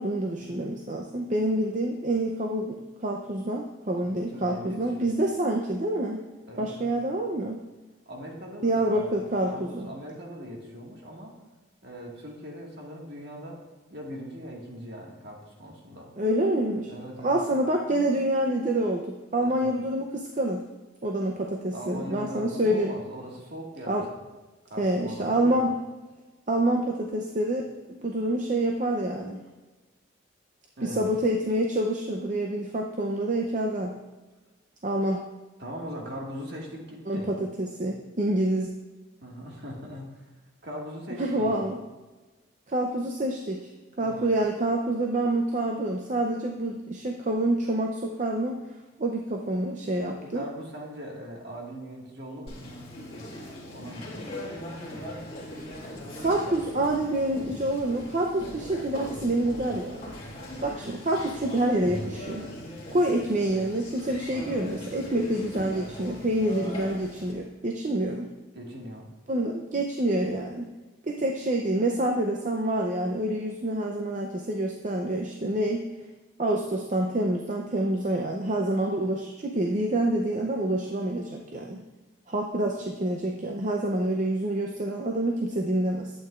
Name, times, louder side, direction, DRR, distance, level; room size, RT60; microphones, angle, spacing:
voice 1, 0.0-6.2 6.6-7.6 8.6-9.9 16.2-16.9 17.2-20.6 21.0-23.0 23.9-24.0 24.8-25.7 26.5-29.4 30.8-34.0 34.8-35.2 37.1-38.7 41.2-41.8 42.7-43.7 44.0-48.6 49.0-50.4 56.2-60.1 60.6-62.5 62.9-68.3 69.3-70.7 71.0-75.9 76.4-81.8 82.3-86.1, right 1 dB, 35° right, 1 dB, 0.5 m, -27 dB
voice 2, 4.0-5.1 6.5-7.0 8.1-11.3 11.8-13.6 13.9-16.1 16.9-17.4 19.4-19.7 21.7-24.2 24.7-25.7 30.8-31.1 35.6-37.3 39.2-40.3 40.6-41.6 44.0-44.3 50.0-52.6 53.7-54.3 64.3-64.5 68.5-69.1, equal, 55° right, -1 dB, 1.7 m, -40 dB
Conversation, 52.5-67.3, left 1 dB, 30° left, 1.9 m, -40 dB
11.5 x 8.6 x 2.4 m, 1.2 s
head